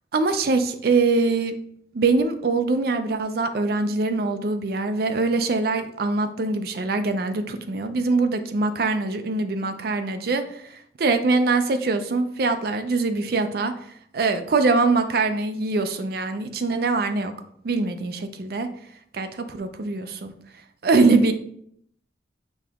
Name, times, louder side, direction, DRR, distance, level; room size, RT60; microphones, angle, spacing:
voice 1, 0.1-1.5 1.9-13.7 14.1-17.3 17.6-18.7 19.1-20.3 20.8-21.3, right 3 dB, 55° right, 9 dB, 0.4 m, -23 dB
5.2 x 2.9 x 3.5 m, 0.68 s
head